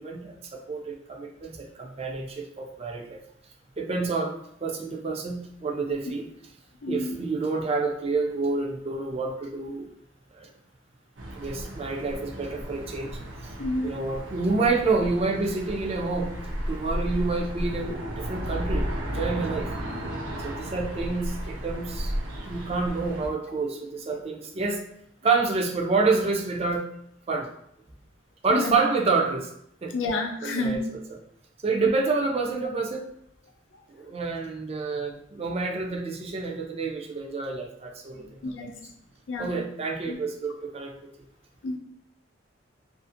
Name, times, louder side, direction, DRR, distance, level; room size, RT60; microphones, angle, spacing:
voice 1, 0.0-3.2 3.8-6.3 6.9-9.9 10.3-10.5 11.3-13.2 13.8-16.3 16.7-19.7 20.4-22.1 22.5-24.8 25.2-26.9 27.3-27.5 28.4-29.5 29.8-30.0 30.4-31.0 31.6-33.1 34.0-38.4 39.4-41.1, right 3 dB, 30° right, 1 dB, 0.4 m, -28 dB
voice 2, 6.8-7.2 13.6-14.0 28.5-28.8 29.9-30.8 38.4-38.7 39.3-39.5 40.1-40.2 41.6-41.8, left 2 dB, 80° left, 3 dB, 0.5 m, -29 dB
sound 1, 11.2-23.3, equal, 80° right, 0.6 m, -34 dB
2.5 x 2.4 x 2.5 m, 0.70 s
head